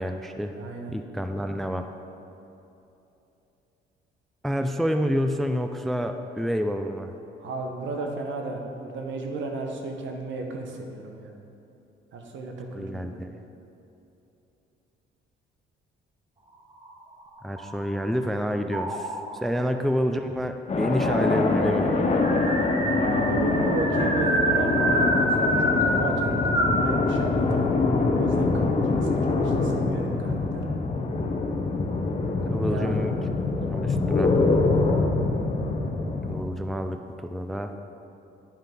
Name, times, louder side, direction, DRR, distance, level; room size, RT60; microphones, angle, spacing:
voice 1, 0.0-0.5 0.9-1.9 4.4-7.1 12.7-13.4 17.4-22.0 32.5-33.1 33.5-34.4 36.3-37.7, equal, ahead, 7 dB, 0.3 m, -28 dB
voice 2, 0.5-0.9 7.4-11.3 12.1-13.2 19.6-19.7 23.0-27.8 28.1-30.6 32.6-33.0, right 3 dB, 70° right, 2 dB, 1.1 m, -33 dB
sound 1, 16.7-18.2 18.7-19.4 20.4-20.5 20.7-20.8 21.1-26.9, right 1 dB, 25° right, 1.2 m, -27 dB
sound 2, 20.7-36.4, left 3 dB, 30° left, 0.8 m, -24 dB
10.0 x 5.4 x 3.8 m, 2.9 s
cardioid pair, 90°, 20 cm